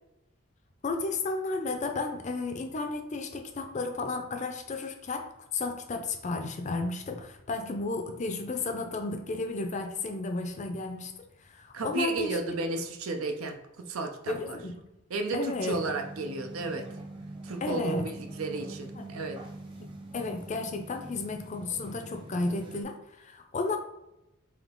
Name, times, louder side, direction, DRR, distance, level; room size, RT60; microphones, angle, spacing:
voice 1, 0.8-11.1 11.5-12.6 14.3-14.8 15.3-15.7 17.6-18.0 19.0-19.3 20.1-23.8, left 3 dB, 35° left, 5 dB, 0.5 m, -33 dB
voice 2, 11.7-14.6 15.1-16.9 17.4-19.4, right 3 dB, 85° right, 5 dB, 0.5 m, -33 dB
sound 1, 15.7-22.8, right 1 dB, 25° right, 0.7 m, -44 dB
3.6 x 2.8 x 3.7 m, 0.90 s
head